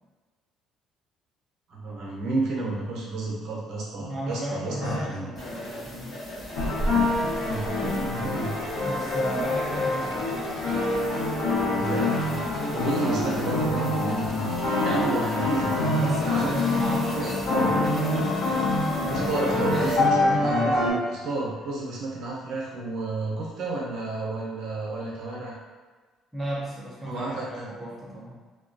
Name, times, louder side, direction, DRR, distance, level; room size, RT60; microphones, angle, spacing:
voice 1, 1.7-5.3 7.2-8.5 11.7-12.4 12.7-14.5 14.8-15.9 16.3-16.6 17.1-17.7 19.1-25.6 27.0-27.5, right 2 dB, 55° right, -4 dB, 0.6 m, -31 dB
voice 2, 4.0-6.4 8.8-10.5 15.8-17.4 19.0-19.4 26.3-28.4, right 1 dB, 5° right, -6 dB, 0.4 m, -34 dB
sound 1, 4.8-5.0 6.5-20.9, left 2 dB, 80° left, 0.9 m, -25 dB
sound 2, 5.3-19.9, left 1 dB, 40° left, 0.9 m, -38 dB
2.2 x 2.2 x 2.5 m, 1.4 s
cardioid pair, 155°, 0 cm